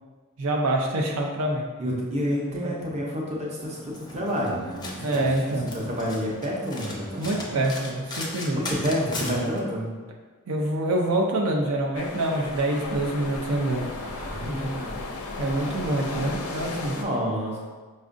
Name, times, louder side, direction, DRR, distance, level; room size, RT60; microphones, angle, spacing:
voice 1, 0.4-1.7 2.3-2.7 5.0-5.7 7.2-8.6 10.5-13.9 14.4-14.7 15.4-16.9, right 1 dB, 85° right, 0 dB, 0.5 m, -26 dB
voice 2, 1.8-5.2 5.8-7.4 8.5-9.9 14.0-14.9 16.9-17.6, equal, 30° right, -3 dB, 0.7 m, -29 dB
Domestic sounds home sounds, 3.6-9.6, left 2 dB, 20° left, 0.5 m, -38 dB
sound 1, 11.9-17.0, left 3 dB, 80° left, 0.5 m, -34 dB
5.1 x 2.4 x 2.5 m, 1.4 s
head